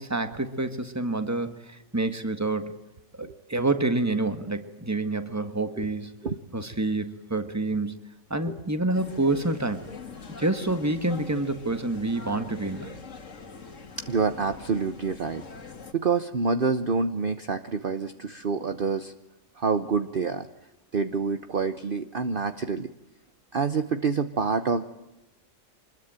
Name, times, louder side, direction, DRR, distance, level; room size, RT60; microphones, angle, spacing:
voice 1, 0.0-2.7 3.2-6.1 6.5-8.0 8.3-9.9 10.4-12.9, right 2 dB, 10° right, 9 dB, 1.7 m, -28 dB
sound 1, 8.9-15.9, left 5 dB, 65° left, 2.3 m, -43 dB
voice 2, 14.1-15.4 15.9-19.1 19.6-20.5 20.9-22.9 23.5-24.8, right 5 dB, 45° right, 10 dB, 1.1 m, -27 dB
25.0 x 21.0 x 9.0 m, 0.96 s
omnidirectional pair, 1.4 m